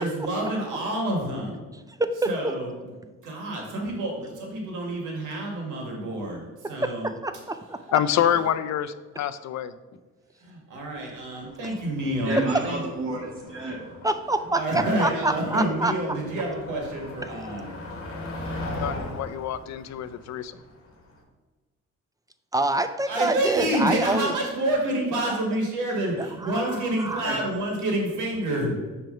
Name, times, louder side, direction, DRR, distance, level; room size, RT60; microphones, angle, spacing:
voice 1, 0.0-1.5 2.3-2.7 3.2-7.1 8.2-8.4 10.4-12.4 12.6-12.8 14.5-17.7 23.1-28.8, right 1 dB, 85° right, 0 dB, 1.7 m, -28 dB
voice 2, 2.0-2.3 6.6-7.8 11.6-11.8 14.0-15.9 22.5-24.3 25.3-25.4 26.2-27.3, right 2 dB, 10° right, 9 dB, 0.3 m, -27 dB
voice 3, 7.9-9.7 18.8-20.6, left 10 dB, 65° left, 14 dB, 0.4 m, -26 dB
Motor vehicle (road), 10.8-21.2, left 1 dB, 45° left, 1.5 m, -39 dB
voice 4, 12.0-13.9 27.2-27.4, right 2 dB, 50° right, -7 dB, 1.7 m, -30 dB
6.2 x 3.4 x 5.4 m, 1.3 s
cardioid pair, 90°, 30 cm